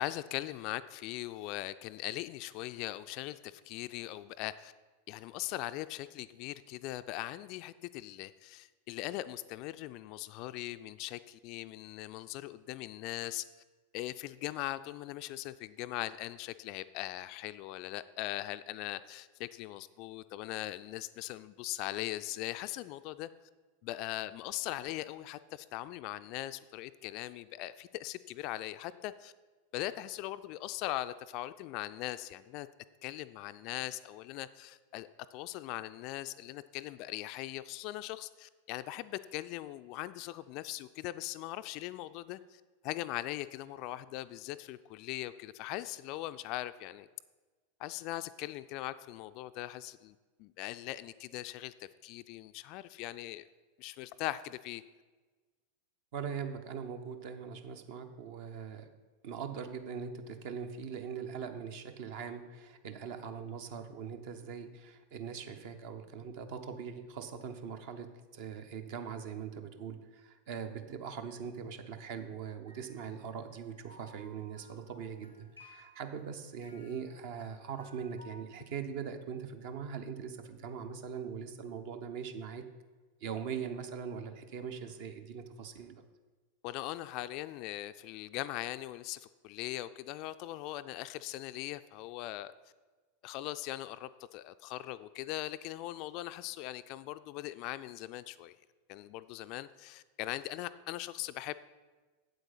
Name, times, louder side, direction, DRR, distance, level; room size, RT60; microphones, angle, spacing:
voice 1, 0.0-4.7 5.1-13.4 13.9-23.3 23.8-29.3 29.7-32.7 33.0-47.1 47.8-53.5 53.8-54.8 86.6-92.5 93.2-98.6 98.9-101.5, left 15 dB, 40° left, 13 dB, 0.3 m, -40 dB
voice 2, 56.1-58.9 59.2-82.6 83.2-85.9, right 7 dB, 50° right, 8 dB, 0.8 m, -41 dB
sound 1, 72.7-78.4, left 1 dB, 90° right, 1.3 m, -59 dB
8.1 x 8.1 x 5.6 m, 1.3 s
figure-of-eight pair, 90°, 0 cm